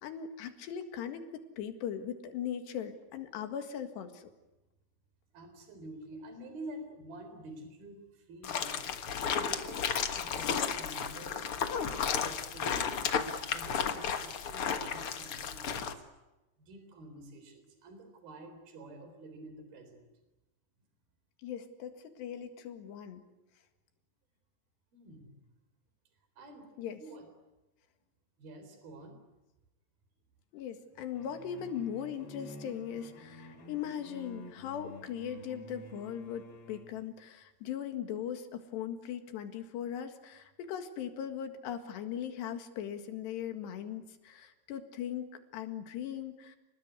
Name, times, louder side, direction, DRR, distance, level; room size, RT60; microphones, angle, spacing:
voice 1, 0.0-4.3 21.4-23.2 26.8-27.1 30.5-45.3 45.5-46.6, left 9 dB, 90° left, 7 dB, 4.0 m, -39 dB
voice 2, 5.3-8.9 9.3-15.9 16.6-20.0 24.9-25.4 26.4-26.7 27.0-27.3 28.4-29.2, right 2 dB, 60° right, 7 dB, 5.8 m, -49 dB
sound 1, 8.4-15.9, left 7 dB, 65° left, 1.3 m, -33 dB
sound 2, 31.2-37.0, left 1 dB, 40° left, 3.2 m, -50 dB
29.0 x 20.0 x 9.8 m, 1.0 s
omnidirectional pair, 4.8 m